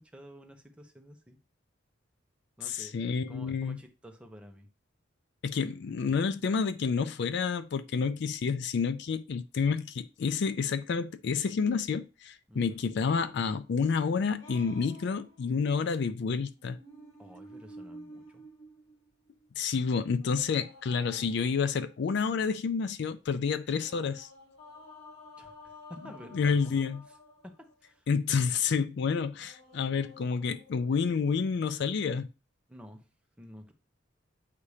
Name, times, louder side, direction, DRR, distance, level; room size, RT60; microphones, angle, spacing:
voice 1, 0.1-1.4 2.6-3.0 3.3-4.7 12.5-12.8 17.2-18.4 25.4-26.6 27.4-28.1 32.7-33.1 33.4-33.7, equal, 5° right, 0.8 m, -50 dB
voice 2, 2.6-3.8 5.4-16.8 19.6-24.3 26.3-27.0 28.1-32.3, left 5 dB, 60° left, 0.4 m, -29 dB
sound 1, 13.1-15.7 16.6-19.5 20.2-22.3 23.8-27.9 29.3-31.3, left 1 dB, 85° left, 2.4 m, -52 dB
8.3 x 2.8 x 4.9 m
head